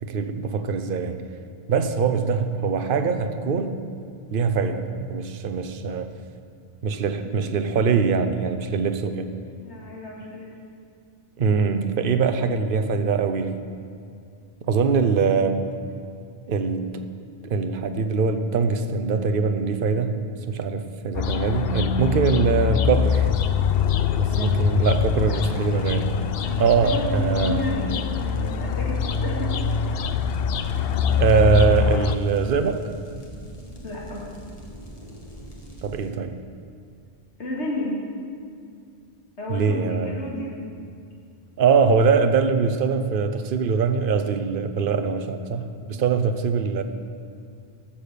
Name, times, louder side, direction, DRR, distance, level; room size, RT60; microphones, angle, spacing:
voice 1, 0.0-1.2 1.7-3.8 4.3-6.1 6.8-9.3 11.4-13.6 14.7-15.7 16.5-17.0 17.4-20.2 20.5-23.3 24.2-26.1 26.6-27.7 31.2-32.8 33.1-33.2 35.8-36.4 39.5-40.2 41.6-46.8, right 5 dB, 55° right, 9 dB, 0.9 m, -22 dB
voice 2, 9.6-10.5 24.2-24.6 25.3-25.7 26.4-29.5 33.8-34.4 37.4-38.0 39.4-40.7 45.9-46.2, left 1 dB, 80° left, -4 dB, 2.5 m, -33 dB
sound 1, 21.1-32.2, left 7 dB, 65° left, 0.8 m, -24 dB
sound 2, 22.9-36.1, equal, 35° left, 1.7 m, -42 dB
14.5 x 7.3 x 6.8 m, 2.4 s
omnidirectional pair, 1.1 m